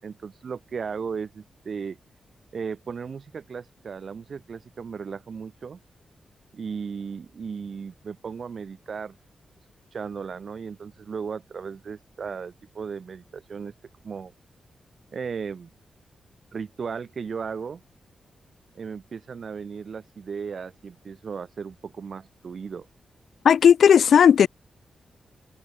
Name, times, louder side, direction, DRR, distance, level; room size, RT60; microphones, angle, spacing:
voice 1, 0.0-2.0 2.5-5.8 6.5-9.1 9.9-13.7 14.0-14.3 15.1-15.7 16.5-17.8 18.7-22.9, right 6 dB, 45° right, 7.4 m, -35 dB
voice 2, 23.4-24.5, left 8 dB, 70° left, 2.2 m, -15 dB
wide cardioid pair, 165°, 0 cm